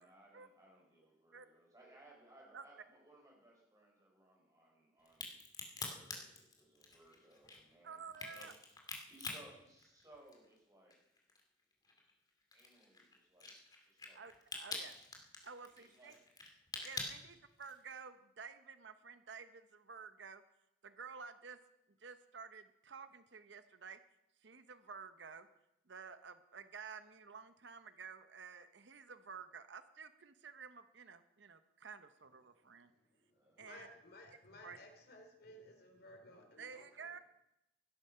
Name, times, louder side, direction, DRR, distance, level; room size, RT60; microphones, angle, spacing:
voice 1, 0.0-5.4 5.7-8.6 9.0-11.0 12.5-13.5 13.8-14.3 15.7-16.2 33.3-33.7, right 1 dB, 20° right, -2 dB, 5.8 m, -63 dB
Crack, 5.1-10.6 10.9-17.9, left 3 dB, 20° left, 2.5 m, -47 dB
voice 2, 7.8-8.5 14.1-15.0 15.4-16.1 16.8-20.4 20.8-21.6 22.0-24.0 24.4-25.5 25.9-32.9 33.6-33.9 34.6-34.8 36.6-37.2, right 5 dB, 70° right, 11 dB, 0.8 m, -52 dB
voice 3, 32.7-37.2, left 1 dB, 55° left, 4 dB, 3.1 m, -58 dB
16.5 x 13.0 x 5.6 m, 0.86 s
head